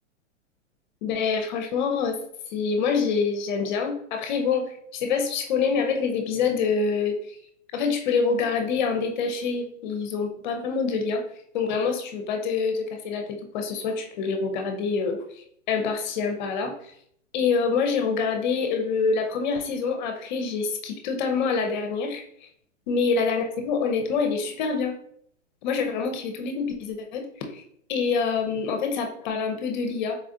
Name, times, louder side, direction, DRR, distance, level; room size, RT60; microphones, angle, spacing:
voice 1, 1.0-2.2 2.5-7.3 7.7-11.2 11.5-16.9 17.3-22.5 22.9-24.9 25.6-27.3 27.5-27.6 27.9-30.2, left 5 dB, 40° left, 5 dB, 0.6 m, -26 dB
4.2 x 2.4 x 2.5 m, 0.65 s
hypercardioid pair, 135°, 38 cm